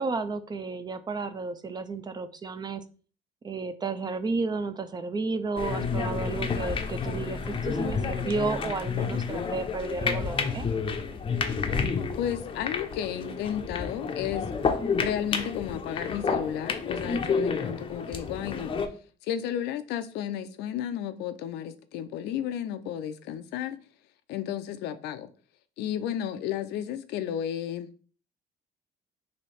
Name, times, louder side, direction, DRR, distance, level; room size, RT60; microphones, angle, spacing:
voice 1, 0.0-2.8 3.4-10.7, right 4 dB, 25° right, 0.4 m, -32 dB
sound 1, 5.6-18.9, left 5 dB, 30° left, 0.6 m, -30 dB
voice 2, 12.1-14.5 15.0-18.8 19.2-23.8 24.3-25.3 25.8-28.0, left 10 dB, 85° left, 0.5 m, -33 dB
3.2 x 2.7 x 4.1 m
cardioid pair, 110°, 17 cm